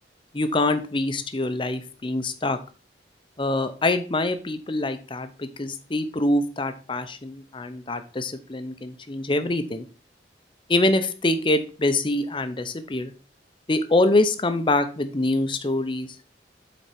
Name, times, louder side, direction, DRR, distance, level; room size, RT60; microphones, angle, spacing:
voice 1, 0.3-2.6 3.4-9.9 10.7-13.1 13.7-16.1, left 2 dB, 30° left, 9 dB, 0.7 m, -25 dB
8.2 x 4.3 x 4.3 m, 0.37 s
head